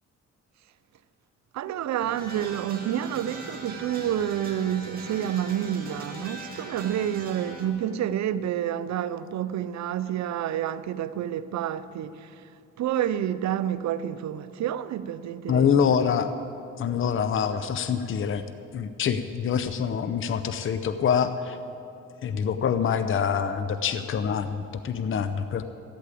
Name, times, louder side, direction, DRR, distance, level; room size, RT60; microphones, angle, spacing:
voice 1, 1.5-12.3 12.8-15.9, right 10 dB, 65° right, 0.6 m, -29 dB
sound 1, 2.0-7.7, right 2 dB, 30° right, 2.5 m, -40 dB
voice 2, 15.5-16.3 16.8-18.4 18.7-21.6 22.2-25.6, left 7 dB, 45° left, 0.7 m, -25 dB
14.5 x 8.5 x 8.4 m
cardioid pair, 90°, 30 cm